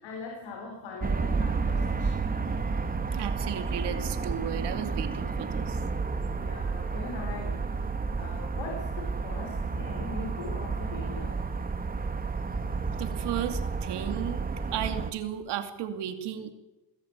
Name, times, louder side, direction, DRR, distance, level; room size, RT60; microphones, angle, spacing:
voice 1, 0.0-2.3 6.3-7.6 8.2-11.3, left 3 dB, 75° left, 2 dB, 4.5 m, -41 dB
sound 1, 1.0-15.1, right 4 dB, 20° right, 1.6 m, -31 dB
voice 2, 3.1-5.8 13.0-14.4 14.7-16.5, right 10 dB, 65° right, 7 dB, 2.6 m, -34 dB
21.5 x 14.0 x 8.9 m, 1.1 s
cardioid pair, 125°, 44 cm